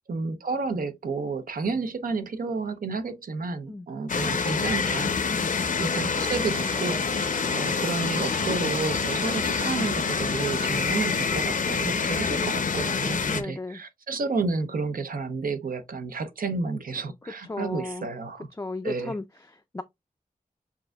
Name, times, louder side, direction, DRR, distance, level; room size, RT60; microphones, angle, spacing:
voice 1, 0.1-5.1 5.8-18.5 18.8-19.1, right 4 dB, 75° right, 0.6 m, -31 dB
sound 1, 4.1-13.4, left 5 dB, 65° left, 0.6 m, -27 dB
sound 2, 6.2-11.4, right 3 dB, 40° right, 0.5 m, -41 dB
voice 2, 13.3-13.8 17.5-18.1 18.6-19.8, left 2 dB, 20° left, 0.4 m, -35 dB
7.2 x 2.6 x 2.3 m
wide cardioid pair, 60°, 15 cm